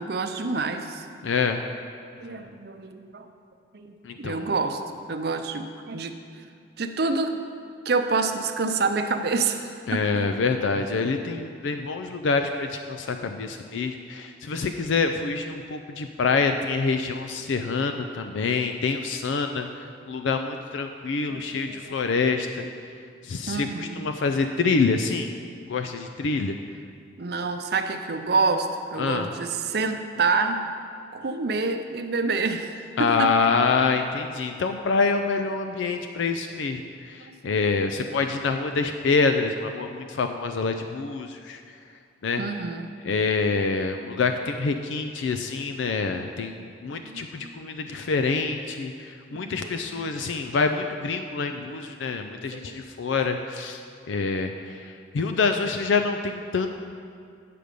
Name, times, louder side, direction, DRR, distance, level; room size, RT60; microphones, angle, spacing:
voice 1, 0.0-1.1 2.2-3.3 3.7-4.8 5.1-6.5 6.8-7.4 7.8-10.3 21.3-22.0 23.5-24.1 27.2-30.6 31.1-33.3 37.3-37.5 42.4-42.9 46.0-46.2 46.5-47.6 49.3-50.3 52.4-52.8, right 4 dB, 60° right, 7 dB, 0.6 m, -28 dB
voice 2, 1.2-1.6 4.0-4.5 9.9-19.7 20.1-22.7 23.2-25.3 25.7-26.6 29.0-29.3 33.0-36.8 37.1-41.6 42.2-42.4 43.0-46.5 46.8-53.8 54.1-56.7, left 4 dB, 90° left, 6 dB, 0.4 m, -26 dB
9.3 x 5.0 x 6.7 m, 2.3 s
head